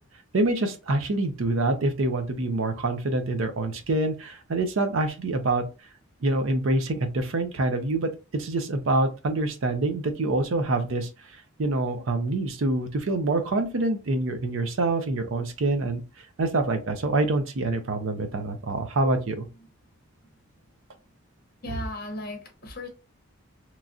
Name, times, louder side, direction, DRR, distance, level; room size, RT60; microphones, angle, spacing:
voice 1, 0.3-5.7 6.2-11.1 11.6-19.5, right 2 dB, 70° right, 0.5 m, -26 dB
voice 2, 21.6-22.9, left 1 dB, 50° left, 0.8 m, -38 dB
3.0 x 2.3 x 2.5 m
head